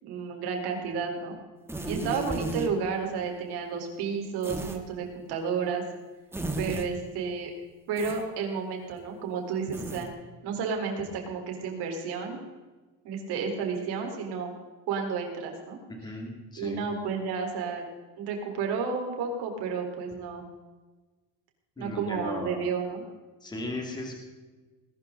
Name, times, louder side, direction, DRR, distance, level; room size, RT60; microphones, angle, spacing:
voice 1, 0.0-1.4 1.9-5.8 6.6-7.5 7.9-10.1 10.4-12.4 13.0-14.5 14.9-15.8 16.6-17.8 18.2-20.5 21.8-23.1, right 5 dB, 70° right, 2 dB, 4.2 m, -31 dB
sound 1, 1.7-2.7 4.4-4.8 6.3-6.9 8.0-8.2 9.7-10.1, right 2 dB, 5° right, 1.6 m, -34 dB
voice 2, 16.0-16.8 21.8-22.7 23.4-24.1, left 2 dB, 10° left, 1 dB, 2.4 m, -36 dB
20.0 x 12.5 x 3.9 m, 1.2 s
cardioid pair, 165°, 40 cm